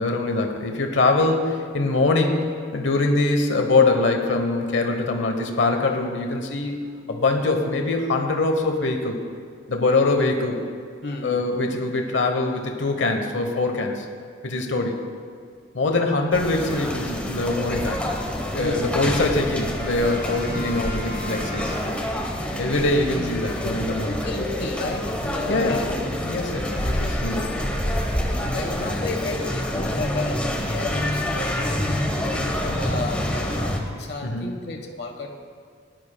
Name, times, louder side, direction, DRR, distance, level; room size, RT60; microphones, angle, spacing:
voice 1, 0.0-6.8 7.1-9.2 9.7-10.6 11.2-14.0 14.4-15.0 15.7-18.0 18.5-21.8 22.6-24.3 25.5-25.8 26.2-27.5 34.2-34.5, left 2 dB, 90° left, 4 dB, 1.0 m, -23 dB
voice 2, 11.0-11.4 15.8-16.1 24.2-26.0 28.1-35.3, left 3 dB, 60° left, 2 dB, 1.3 m, -33 dB
sound 1, 16.3-33.8, left 1 dB, 5° left, 1.0 m, -27 dB
Brass instrument, 19.8-22.4, left 1 dB, 65° right, 2.7 m, -37 dB
18.5 x 11.0 x 2.3 m, 2.1 s
head